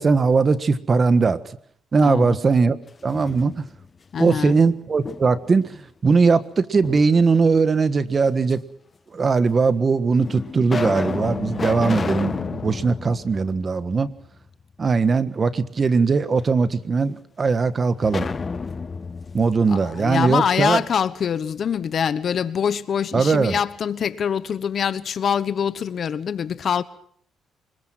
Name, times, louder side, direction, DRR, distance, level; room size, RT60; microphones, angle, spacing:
voice 1, 0.0-1.4 1.9-2.8 3.0-3.5 4.2-8.6 9.1-14.1 14.8-18.3 19.3-20.8 23.1-23.5, right 4 dB, 35° right, 1.5 m, -20 dB
voice 2, 2.0-2.4 4.1-4.5 19.7-26.8, left 7 dB, 55° left, 1.1 m, -24 dB
sound 1, 2.9-3.9 4.3-5.6 6.8-7.6 8.5-8.6 9.5-9.6 10.2-14.3 14.6-14.7 18.0-20.8, left 4 dB, 35° left, 1.2 m, -31 dB
24.5 x 21.5 x 6.2 m
cardioid pair, 90°, 0 cm